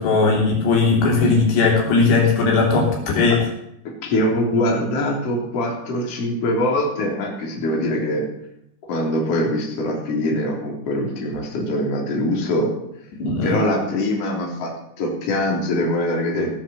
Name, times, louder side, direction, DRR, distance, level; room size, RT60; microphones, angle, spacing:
voice 1, 0.0-3.4 13.1-13.5, left 4 dB, 85° left, -2 dB, 5.4 m, -18 dB
voice 2, 4.0-8.3 8.9-12.7 13.4-14.7 15.0-16.5, left 1 dB, 40° left, -1 dB, 3.8 m, -23 dB
17.0 x 7.4 x 7.5 m, 0.77 s
omnidirectional pair, 4.8 m